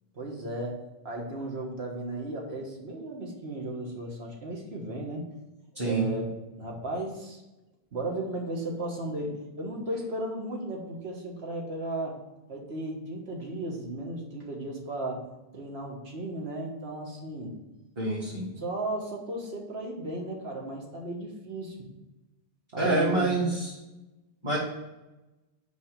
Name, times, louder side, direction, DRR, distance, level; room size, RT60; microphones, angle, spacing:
voice 1, 0.1-0.8 1.0-5.3 5.8-7.4 7.9-12.2 12.5-15.3 15.5-17.6 18.3-21.7 22.7-23.3, right 1 dB, 75° right, 0 dB, 1.7 m, -35 dB
voice 2, 5.8-6.1 18.0-18.5 22.8-23.7 24.4-24.6, right 2 dB, 25° right, -8 dB, 1.7 m, -26 dB
5.5 x 5.1 x 6.6 m, 1.0 s
omnidirectional pair, 1.1 m